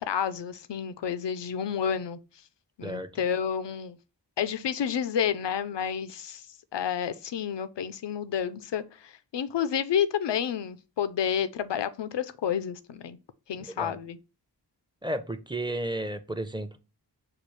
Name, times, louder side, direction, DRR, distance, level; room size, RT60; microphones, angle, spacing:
voice 1, 0.0-2.2 2.8-4.0 4.4-6.5 6.7-13.2 13.5-14.2, left 8 dB, 85° left, 0.5 m, -30 dB
voice 2, 2.8-3.2 13.7-14.0 15.0-16.8, right 1 dB, 10° right, 0.6 m, -33 dB
6.8 x 2.4 x 3.1 m
wide cardioid pair, 45°, 41 cm